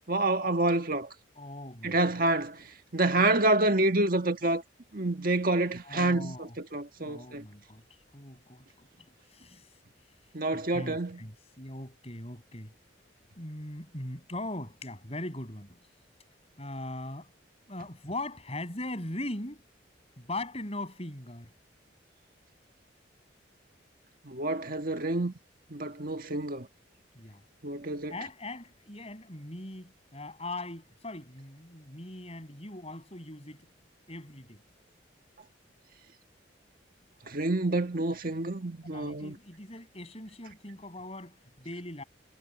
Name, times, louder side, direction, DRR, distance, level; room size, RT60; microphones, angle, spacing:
voice 1, 0.1-1.1 1.8-2.6 2.9-4.6 4.9-6.3 6.7-7.4 10.3-11.2 24.3-25.3 25.7-26.7 27.6-28.1 37.3-39.4, right 2 dB, 50° right, 1.7 m, -27 dB
voice 2, 1.4-2.2 3.1-3.3 5.8-6.6 7.0-7.8 8.1-8.7 9.0-9.8 10.5-12.7 13.4-15.8 16.6-17.3 17.7-19.6 20.2-21.5 27.1-27.4 28.1-33.6 34.1-34.6 38.9-42.0, left 1 dB, 30° left, 7.8 m, -40 dB
head